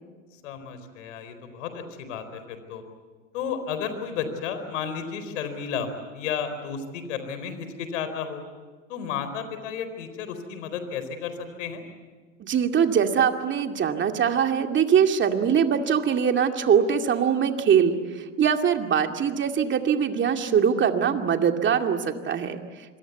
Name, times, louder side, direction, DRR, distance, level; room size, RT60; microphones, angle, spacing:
voice 1, 0.4-2.8 3.3-8.4 8.9-11.8, left 7 dB, 70° left, 9 dB, 4.4 m, -33 dB
voice 2, 12.4-22.6, right 7 dB, 30° right, 5 dB, 2.4 m, -22 dB
26.5 x 22.5 x 8.2 m, 1.5 s
hypercardioid pair, 95°, 38 cm